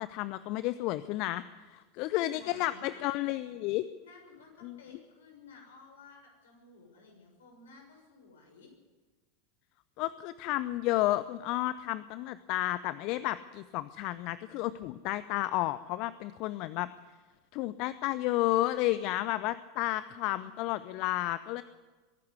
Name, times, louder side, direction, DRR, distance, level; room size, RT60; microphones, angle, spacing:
voice 1, 0.0-3.9 4.6-4.8 10.0-16.9 17.5-21.6, left 16 dB, 50° left, 16 dB, 0.6 m, -32 dB
voice 2, 1.9-3.2 4.0-8.7 20.0-21.0, left 4 dB, 75° left, 2 dB, 6.7 m, -55 dB
23.0 x 11.5 x 9.7 m, 1.3 s
figure-of-eight pair, 85°, 0 cm